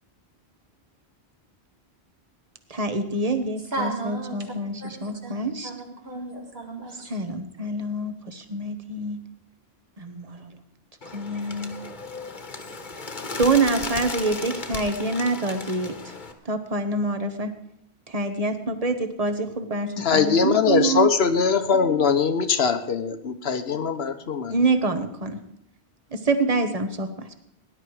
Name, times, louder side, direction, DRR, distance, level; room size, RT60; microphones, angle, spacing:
voice 1, 2.7-5.7 7.1-9.2 10.0-10.6 11.1-11.8 13.4-15.9 16.4-17.5 18.1-21.1 24.5-25.4 26.1-27.3, right 3 dB, 35° right, 8 dB, 1.3 m, -26 dB
voice 2, 3.7-4.5 4.8-5.4 5.6-7.1, right 2 dB, 70° right, 1 dB, 2.8 m, -34 dB
Bird, 11.0-16.3, left 3 dB, 50° left, 1.4 m, -35 dB
voice 3, 20.0-24.5, left 5 dB, 75° left, 9 dB, 1.2 m, -22 dB
18.5 x 11.0 x 4.8 m, 0.75 s
omnidirectional pair, 1.1 m